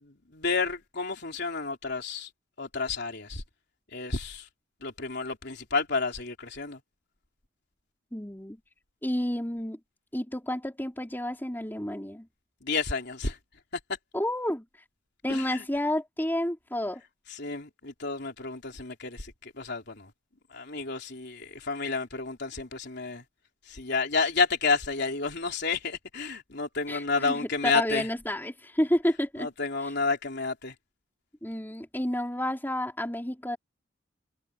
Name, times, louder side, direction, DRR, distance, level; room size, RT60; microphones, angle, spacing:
voice 1, 0.0-2.3 2.6-3.4 3.9-4.5 4.8-6.8 12.6-13.4 15.3-15.6 17.3-20.1 20.5-23.2 23.7-28.1 29.4-30.7, left 4 dB, 55° left, 3.7 m, -30 dB
voice 2, 8.1-8.6 9.0-9.8 10.1-12.3 14.1-14.6 15.2-17.0 26.9-29.5 31.4-33.6, left 1 dB, 10° left, 3.7 m, -30 dB
head